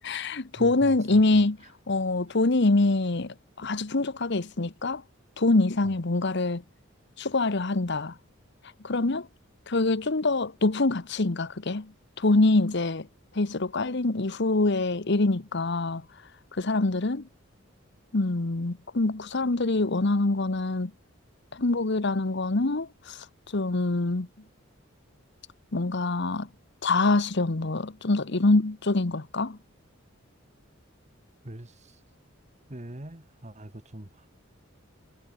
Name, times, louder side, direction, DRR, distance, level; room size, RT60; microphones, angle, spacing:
voice 1, 0.0-1.6 1.9-5.0 5.4-6.6 7.2-8.1 8.8-9.3 9.7-11.9 12.2-13.1 13.3-16.0 16.5-17.2 18.1-20.9 21.5-23.2 23.5-24.3 25.7-26.5 26.8-29.6, left 2 dB, 60° left, 1.1 m, -25 dB
voice 2, 0.6-1.7 2.3-2.4 5.8-6.0 31.4-32.0 32.7-34.3, right 1 dB, 35° right, 1.8 m, -43 dB
head